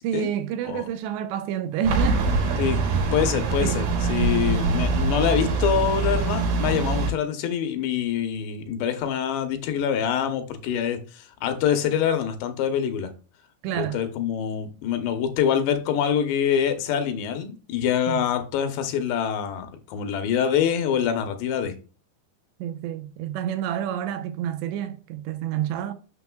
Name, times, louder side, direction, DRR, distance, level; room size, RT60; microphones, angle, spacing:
voice 1, 0.0-2.3 3.6-3.8 13.6-14.0 18.1-18.2 22.6-25.9, right 9 dB, 85° right, 2.9 m, -28 dB
sound 1, 1.8-7.1, right 3 dB, 65° right, 3.2 m, -24 dB
voice 2, 3.1-13.1 13.8-21.8, left 8 dB, 80° left, 3.0 m, -25 dB
7.0 x 6.3 x 2.3 m
omnidirectional pair, 5.0 m